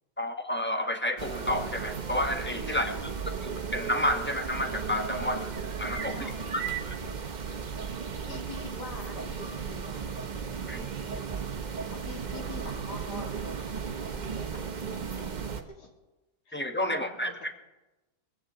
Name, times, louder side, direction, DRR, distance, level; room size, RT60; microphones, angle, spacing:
voice 1, 0.2-2.9 3.4-5.5 5.8-6.2 6.9-7.0 10.7-10.9 16.5-17.3, left 1 dB, 10° left, 5 dB, 0.8 m, -30 dB
sound 1, 1.2-15.6, right 6 dB, 35° right, 0.8 m, -35 dB
voice 2, 2.7-3.1 6.1-6.9 8.3-10.1 11.9-15.0 15.5-15.9 16.5-16.6 16.9-17.6, left 3 dB, 70° left, 1 dB, 3.2 m, -46 dB
22.0 x 15.5 x 3.9 m, 1.1 s
omnidirectional pair, 1.9 m